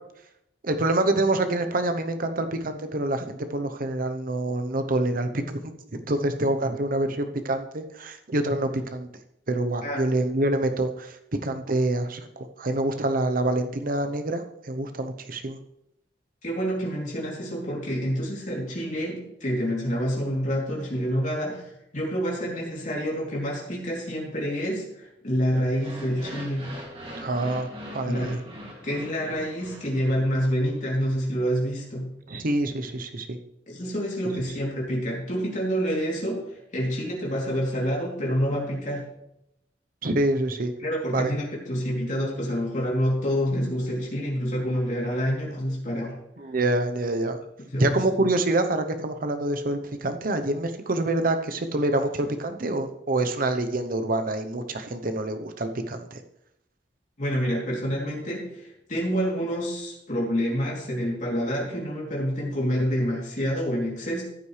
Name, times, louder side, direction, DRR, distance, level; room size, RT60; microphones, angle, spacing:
voice 1, 0.6-9.1 9.5-11.2 11.4-15.6 27.2-27.7 27.9-28.4 32.3-33.4 40.0-40.7 41.1-41.3 46.4-47.4 47.8-56.2, right 2 dB, 50° right, 7 dB, 0.8 m, -26 dB
voice 2, 16.4-21.6 21.9-26.8 28.0-28.3 28.8-32.2 33.7-39.1 40.8-46.2 47.7-48.0 57.2-64.2, equal, 45° left, -2 dB, 3.1 m, -27 dB
sound 1, 25.7-30.9, equal, 30° right, 2.4 m, -41 dB
14.0 x 8.5 x 3.3 m, 0.81 s
head